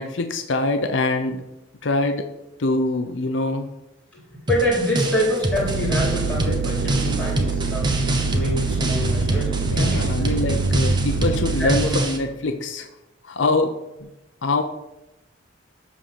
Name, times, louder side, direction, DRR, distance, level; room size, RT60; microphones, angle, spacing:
voice 1, 0.0-1.4 1.8-2.3 2.6-3.7 9.6-12.9 13.2-13.7 14.0-14.1 14.4-14.6, left 2 dB, 70° left, 6 dB, 0.7 m, -24 dB
voice 2, 4.5-10.4 11.6-11.9, equal, 5° left, -5 dB, 3.3 m, -26 dB
sound 1, 4.5-12.2, right 1 dB, 25° right, 1.0 m, -26 dB
sound 2, 5.5-12.0, right 4 dB, 80° right, 0.7 m, -24 dB
11.0 x 3.8 x 6.9 m, 0.92 s
head